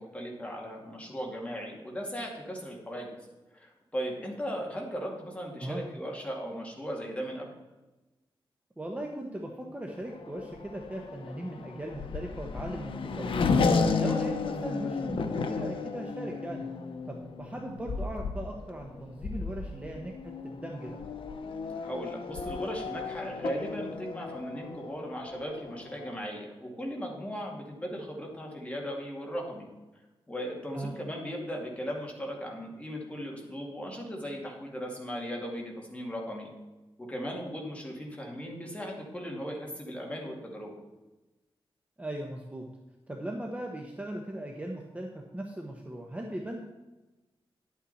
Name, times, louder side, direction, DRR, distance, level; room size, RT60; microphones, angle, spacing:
voice 1, 0.0-3.1 3.5-7.5 14.0-14.2 21.8-29.7 30.3-36.5 37.0-40.8, equal, 15° left, -1 dB, 2.4 m, -37 dB
voice 2, 8.8-13.5 14.0-16.7 17.0-21.0 30.7-31.0 42.0-42.7 43.1-46.6, right 1 dB, 15° right, 1 dB, 1.1 m, -38 dB
Race car auto racing / Accelerating revving vroom, 10.0-26.2, left 4 dB, 70° left, 0.9 m, -33 dB
11.0 x 8.6 x 4.2 m, 1.1 s
wide cardioid pair, 135°, 9 cm